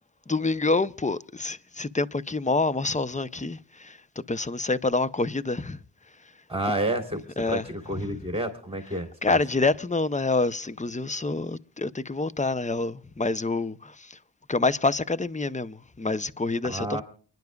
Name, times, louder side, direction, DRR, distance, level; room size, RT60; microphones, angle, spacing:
voice 1, 0.3-4.0 4.3-5.8 7.4-7.6 9.2-14.1 14.5-17.0, left 3 dB, 20° left, 0.6 m, -27 dB
voice 2, 6.5-9.4 16.6-17.0, right 1 dB, 15° right, 3.2 m, -30 dB
28.5 x 10.5 x 2.3 m
wide cardioid pair, 70°, 42 cm